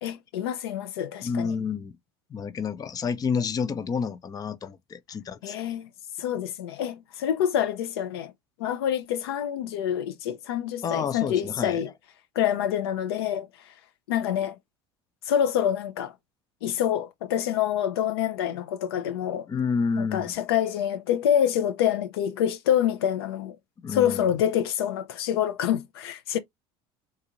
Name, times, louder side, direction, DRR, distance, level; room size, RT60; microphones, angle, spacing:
voice 1, 0.0-1.5 5.4-5.9 6.2-8.3 8.6-11.9 12.4-13.5 14.1-14.6 15.3-16.1 16.6-19.5 20.0-23.6 23.9-26.4, left 10 dB, 85° left, 0.6 m, -26 dB
voice 2, 1.2-1.9 2.3-5.6 10.8-11.8 19.5-20.3 23.8-24.2, left 6 dB, 30° left, 0.6 m, -29 dB
3.8 x 2.5 x 2.8 m
hypercardioid pair, 85°, 13 cm